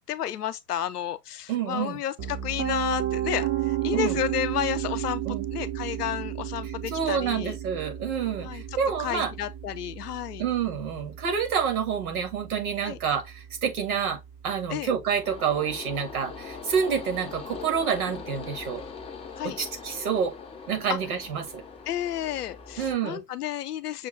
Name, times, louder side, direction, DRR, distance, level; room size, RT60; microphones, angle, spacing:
voice 1, 0.1-5.2 5.5-7.6 8.4-8.6 9.0-10.4 12.8-13.0 14.7-14.9 19.4-19.6 20.9-21.0 21.9-24.1, left 11 dB, 70° left, 0.7 m, -31 dB
voice 2, 1.5-2.0 3.9-4.2 5.3-5.5 6.9-9.3 10.4-18.8 19.4-20.3 20.7-21.6 22.8-23.2, right 7 dB, 60° right, 1.8 m, -28 dB
Piano, 2.2-14.1, right 12 dB, 30° right, 0.7 m, -33 dB
sound 1, 15.2-23.0, left 5 dB, 10° left, 0.6 m, -41 dB
6.3 x 2.3 x 3.3 m
figure-of-eight pair, 95°, 49 cm